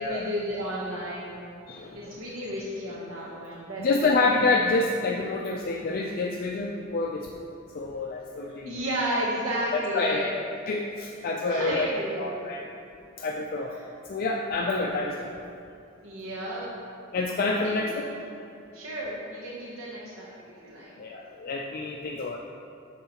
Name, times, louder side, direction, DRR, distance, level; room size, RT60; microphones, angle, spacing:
voice 1, 0.0-1.4 1.9-4.1 8.7-10.2 10.6-10.7 11.2-12.4 16.0-16.7 17.6-18.0 18.7-20.3 20.6-21.0, equal, 80° right, -5 dB, 1.0 m, -33 dB
voice 2, 1.7-2.2 3.8-8.7 9.7-10.3 10.7-11.9 12.2-12.7 13.2-13.8 14.1-15.3 17.1-18.0 21.0-22.4, left 3 dB, 45° left, -1 dB, 0.4 m, -28 dB
9.3 x 6.6 x 2.9 m, 2.4 s
head